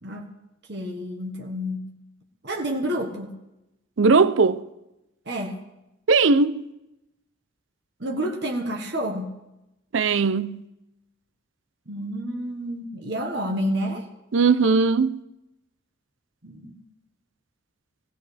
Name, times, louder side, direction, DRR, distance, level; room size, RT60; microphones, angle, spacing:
voice 1, 0.7-1.9 2.4-3.4 5.2-5.6 8.0-9.4 11.9-14.1 16.4-16.8, equal, 55° right, 1.4 m, -29 dB
voice 2, 4.0-4.6 6.1-6.7 9.9-10.6 14.3-15.2, right 4 dB, 75° right, 0.6 m, -19 dB
20.0 x 16.5 x 3.4 m
head